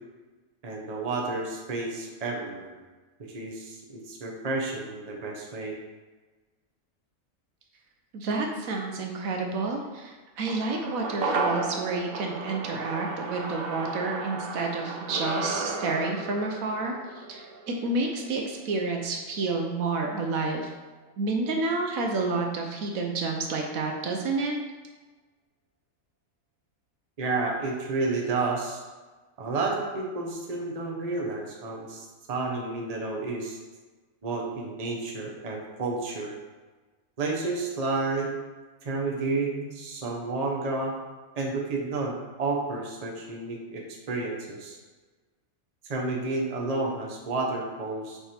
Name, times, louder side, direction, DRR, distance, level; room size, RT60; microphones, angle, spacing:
voice 1, 0.6-2.8 3.3-5.8 27.2-28.8 29.4-33.6 34.2-36.3 37.2-38.3 38.8-40.9 41.3-43.8 44.1-44.8 45.8-48.2, right 3 dB, 30° right, -1 dB, 0.9 m, -31 dB
voice 2, 8.1-17.5 17.8-20.7 21.2-24.5, right 3 dB, 75° right, 2 dB, 1.2 m, -29 dB
sound 1, 10.5-19.0 19.3-19.4, right 3 dB, 55° right, 0.6 m, -34 dB
6.7 x 3.4 x 4.4 m, 1.3 s
omnidirectional pair, 1.5 m